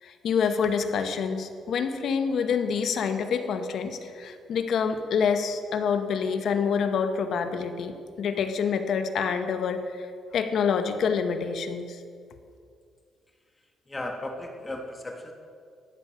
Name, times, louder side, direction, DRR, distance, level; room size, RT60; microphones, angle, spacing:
voice 1, 0.0-10.1 10.3-12.0, left 6 dB, 65° left, 8 dB, 0.9 m, -27 dB
voice 2, 13.9-15.3, left 1 dB, 20° left, 3 dB, 1.3 m, -35 dB
13.0 x 8.2 x 5.6 m, 2.3 s
cardioid pair, 90°, 0 cm